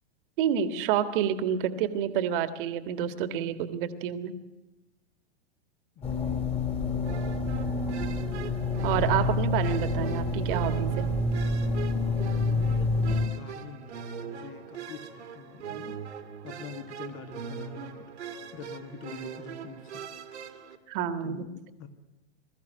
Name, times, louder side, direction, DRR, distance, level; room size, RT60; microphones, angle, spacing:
voice 1, 0.4-4.3 8.8-11.1 20.9-21.4, right 9 dB, 50° right, 10 dB, 1.8 m, -28 dB
voice 2, 6.0-6.9 12.3-16.0 16.4-18.1 18.5-20.0 20.4-20.6 21.2-21.9, left 5 dB, 35° left, 8 dB, 2.2 m, -45 dB
sound 1, 6.0-13.3, left 2 dB, 20° left, 2.9 m, -28 dB
sound 2, 7.0-20.8, right 7 dB, 75° right, 2.0 m, -40 dB
21.5 x 14.0 x 9.2 m, 1.0 s
hypercardioid pair, 110°, 34 cm